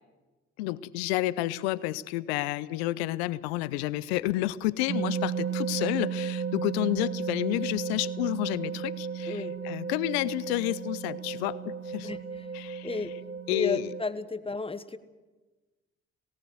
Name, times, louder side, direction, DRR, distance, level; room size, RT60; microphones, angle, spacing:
voice 1, 0.6-12.1 12.5-12.9 13.5-13.9, left 16 dB, 80° left, 18 dB, 0.6 m, -30 dB
sound 1, 4.9-14.0, right 6 dB, 70° right, 1.2 m, -34 dB
voice 2, 12.0-12.5 12.8-13.2 13.5-15.0, left 3 dB, 15° left, 12 dB, 1.3 m, -33 dB
18.5 x 18.0 x 7.9 m, 1.2 s
hypercardioid pair, 50°, 31 cm